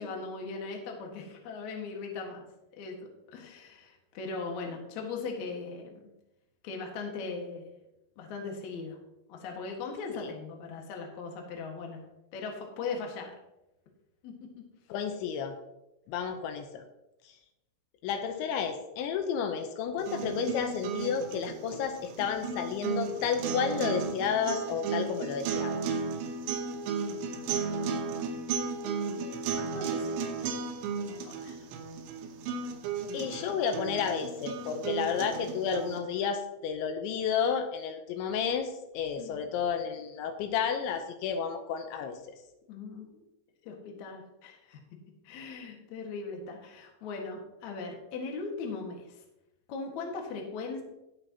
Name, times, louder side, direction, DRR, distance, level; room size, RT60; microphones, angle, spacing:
voice 1, 0.0-2.4 2.8-3.0 3.3-5.9 6.6-7.7 8.2-9.0 9.3-12.0 12.3-13.3 14.2-14.3 27.4-28.5 29.2-30.6 31.1-31.7 39.2-39.4 42.7-43.2 43.6-44.8 45.2-49.2 49.7-50.8, left 4 dB, 55° left, 1 dB, 2.2 m, -39 dB
voice 2, 14.9-15.5 16.1-16.8 18.0-25.8 33.1-42.4, left 7 dB, 80° left, 7 dB, 3.0 m, -31 dB
sound 1, 20.0-36.0, right 5 dB, 80° right, 3.5 m, -34 dB
19.5 x 6.6 x 2.9 m, 0.90 s
omnidirectional pair, 5.4 m